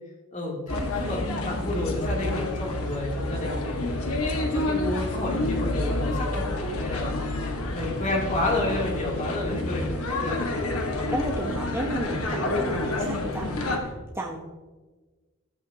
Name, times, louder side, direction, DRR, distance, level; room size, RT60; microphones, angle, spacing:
voice 1, 0.3-3.8 4.1-6.4 6.8-10.4, left 2 dB, 35° left, -2 dB, 3.2 m, -31 dB
sound 1, 0.7-13.8, left 2 dB, 80° left, 1.8 m, -28 dB
voice 2, 11.1-14.4, right 1 dB, 10° right, -1 dB, 1.0 m, -33 dB
14.5 x 11.0 x 2.9 m, 1.3 s
head